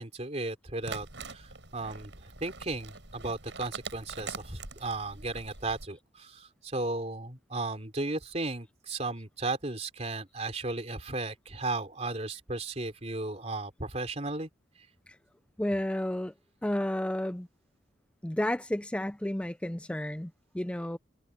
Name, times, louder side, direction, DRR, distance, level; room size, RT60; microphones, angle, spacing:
voice 1, 0.0-2.1 2.4-14.5, right 2 dB, 35° right, 3.4 m, -35 dB
sound 1, 0.8-5.9, right 4 dB, 80° right, 5.0 m, -44 dB
voice 2, 15.6-16.3 16.6-17.5 18.2-21.0, left 1 dB, 5° left, 0.4 m, -32 dB
head